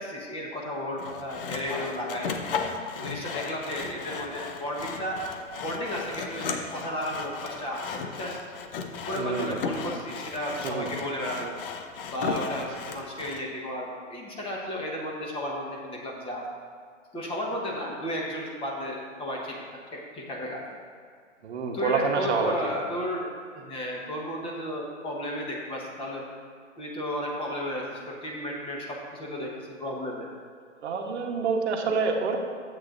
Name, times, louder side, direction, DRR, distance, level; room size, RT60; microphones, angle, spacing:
voice 1, 0.0-2.3 2.9-5.2 5.6-8.4 9.1-11.5 12.1-16.5 17.1-20.6 21.7-26.2 26.8-30.3, equal, 15° left, -2 dB, 1.2 m, -33 dB
Sawing, 1.0-13.4, left 5 dB, 45° left, 0.8 m, -35 dB
voice 2, 9.2-9.6 10.6-10.9 21.4-22.7 30.8-32.4, right 5 dB, 60° right, 2 dB, 1.1 m, -27 dB
12.0 x 8.1 x 2.6 m, 2.1 s
hypercardioid pair, 130°, 39 cm